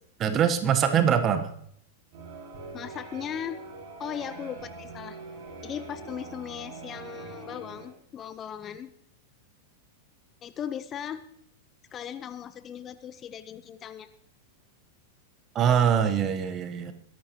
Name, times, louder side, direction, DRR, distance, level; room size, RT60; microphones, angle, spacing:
voice 1, 0.2-1.5 15.5-16.9, right 8 dB, 30° right, 9 dB, 1.2 m, -23 dB
sound 1, 2.1-7.9, right 3 dB, 50° right, 6.3 m, -43 dB
voice 2, 2.7-3.6 4.0-5.2 5.6-8.9 10.4-11.2 11.9-14.1, left 9 dB, 30° left, 13 dB, 0.7 m, -38 dB
21.5 x 11.0 x 3.1 m, 0.69 s
figure-of-eight pair, 95°, 0 cm